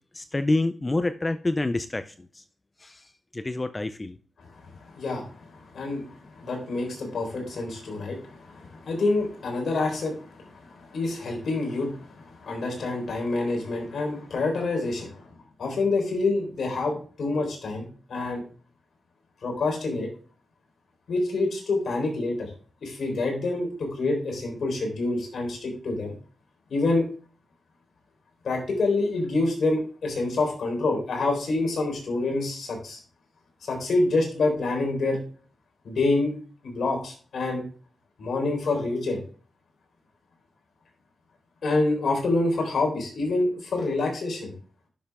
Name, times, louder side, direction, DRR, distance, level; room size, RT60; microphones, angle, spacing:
voice 1, 0.1-2.4 2.8-4.2, left 2 dB, 20° left, 0.5 m, -28 dB
voice 2, 4.8-15.2 15.6-18.4 19.4-20.1 21.1-22.5 22.8-26.1 26.7-27.1 28.4-33.0 33.6-35.2 35.8-36.3 36.6-37.6 38.2-39.2 41.6-44.5, left 2 dB, 65° left, 3.9 m, -27 dB
10.0 x 6.9 x 3.6 m
cardioid pair, 85°, 0 cm